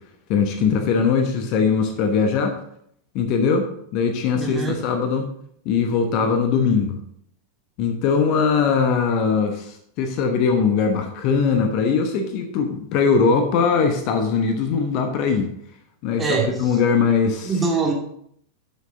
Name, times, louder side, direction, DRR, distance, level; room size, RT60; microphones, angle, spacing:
voice 1, 0.3-2.6 3.1-5.3 5.6-7.0 7.8-15.5 16.0-17.5, left 5 dB, 40° left, 6 dB, 1.1 m, -21 dB
voice 2, 4.3-4.8 16.2-16.7 17.4-17.9, right 4 dB, 15° right, -1 dB, 2.5 m, -23 dB
11.0 x 6.3 x 3.8 m, 0.69 s
figure-of-eight pair, 90°, 0 cm